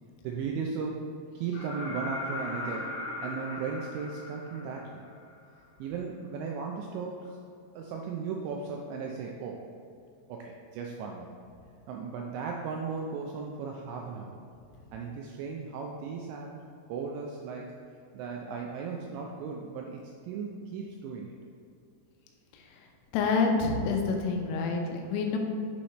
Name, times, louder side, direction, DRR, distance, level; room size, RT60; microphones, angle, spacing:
voice 1, 0.2-1.0 1.3-5.0 5.8-7.4 7.7-9.6 10.3-11.3 11.9-14.4 14.9-16.6 16.9-17.7 18.1-21.4, right 5 dB, 90° right, 0 dB, 2.5 m, -36 dB
sound 1, 1.5-5.3 7.2-7.3, left 2 dB, 70° left, 3.2 m, -38 dB
voice 2, 23.1-25.4, left 4 dB, 90° left, 2 dB, 3.5 m, -27 dB
9.7 x 5.7 x 3.2 m, 2.5 s
omnidirectional pair, 5.8 m